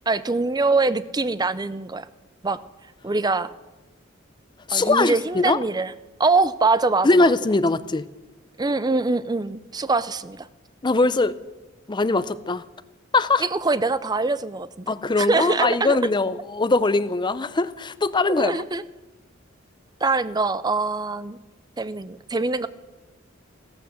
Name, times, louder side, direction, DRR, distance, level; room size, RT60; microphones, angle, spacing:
voice 1, 0.1-2.1 2.4-2.6 3.0-3.5 4.7-5.9 6.2-7.3 8.6-10.5 13.4-16.0 18.4-18.8 20.0-21.4 21.8-22.7, right 3 dB, 20° right, 15 dB, 0.5 m, -23 dB
voice 2, 4.7-5.6 7.0-8.1 10.8-11.3 11.9-12.6 13.1-13.4 14.9-18.6, left 3 dB, 25° left, 14 dB, 0.6 m, -21 dB
15.0 x 12.5 x 7.5 m, 1.1 s
head